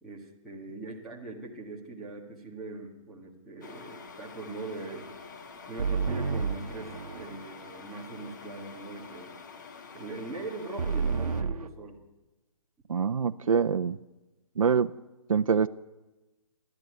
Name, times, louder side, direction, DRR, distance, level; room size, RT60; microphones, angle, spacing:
voice 1, 0.0-5.1 5.7-9.3 9.9-12.0, right 2 dB, ahead, -9 dB, 1.7 m, -41 dB
sound 1, 3.6-11.4, left 5 dB, 30° left, 1.6 m, -47 dB
sound 2, 5.8-7.5 10.8-11.7, right 5 dB, 90° right, 1.1 m, -30 dB
voice 2, 12.9-14.0 14.6-14.9 15.3-15.7, right 6 dB, 65° right, 8 dB, 0.8 m, -25 dB
29.5 x 13.5 x 9.7 m, 1.1 s
hypercardioid pair, 180°, 18 cm